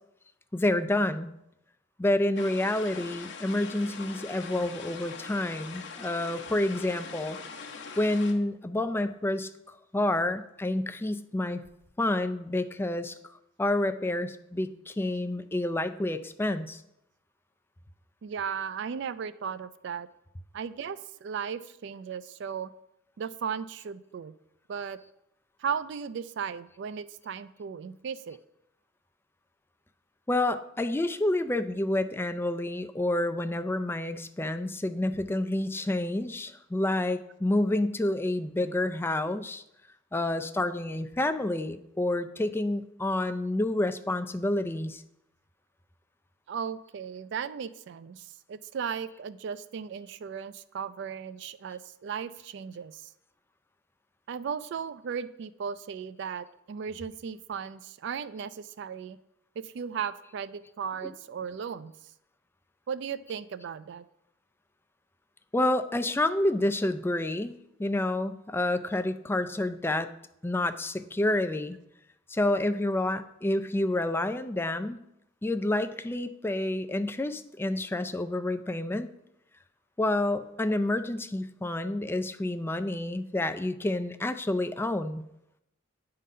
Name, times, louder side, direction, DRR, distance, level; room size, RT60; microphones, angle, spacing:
voice 1, 0.5-1.3 2.0-7.4 8.0-11.6 12.0-13.1 13.6-16.8 30.3-39.6 40.1-45.0 61.0-61.1 65.5-70.1 70.4-71.8 72.3-75.0 75.4-79.1 80.0-85.2, left 1 dB, 10° left, 10 dB, 0.4 m, -29 dB
sound 1, 2.4-8.3, left 5 dB, 65° left, 0.9 m, -42 dB
voice 2, 18.2-20.1 20.5-22.7 23.2-24.3 24.7-25.0 25.6-28.4 46.5-53.1 54.3-59.2 59.6-61.9 62.9-64.0, right 7 dB, 65° right, 15 dB, 0.3 m, -36 dB
9.3 x 3.8 x 5.4 m, 0.81 s
head